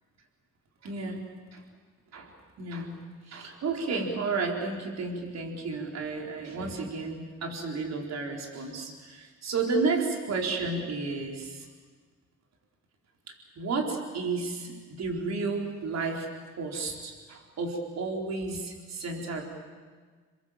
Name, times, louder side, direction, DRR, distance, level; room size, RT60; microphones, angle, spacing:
voice 1, 0.8-1.2 1.5-1.6 2.1-2.3 2.6-11.7 13.6-16.3 16.6-19.4, right 3 dB, 60° right, 1 dB, 4.4 m, -32 dB
28.0 x 22.0 x 7.5 m, 1.5 s
cardioid pair, 90°, 30 cm